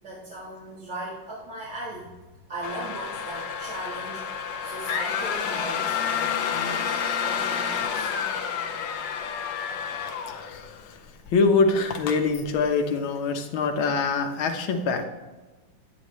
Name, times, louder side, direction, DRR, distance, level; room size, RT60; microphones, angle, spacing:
voice 1, 0.0-2.1 2.5-8.1, right 1 dB, 35° right, -7 dB, 2.0 m, -38 dB
sound 1, 2.6-10.9 11.3-11.4 11.9-12.2, left 7 dB, 70° left, 1.4 m, -29 dB
voice 2, 10.3-10.7 11.3-15.0, left 4 dB, 90° left, 4 dB, 1.8 m, -24 dB
10.0 x 8.7 x 3.1 m, 1.2 s
omnidirectional pair, 2.2 m